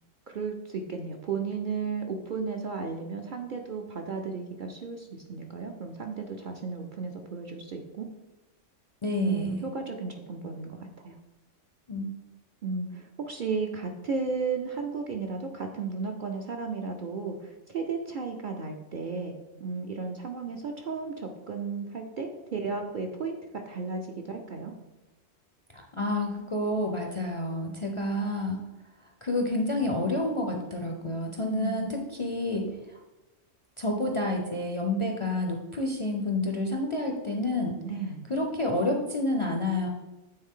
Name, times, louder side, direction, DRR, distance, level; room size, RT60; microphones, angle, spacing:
voice 1, 0.3-8.1 9.2-11.2 12.6-19.3 19.6-24.7 31.4-31.9 37.8-38.2, right 4 dB, 55° right, 2 dB, 0.6 m, -34 dB
voice 2, 9.0-9.7 11.9-12.1 25.7-28.6 29.2-33.0 33.8-37.8 38.3-39.9, left 1 dB, 40° left, 2 dB, 0.4 m, -29 dB
8.8 x 3.9 x 3.6 m, 1.1 s
omnidirectional pair, 1.3 m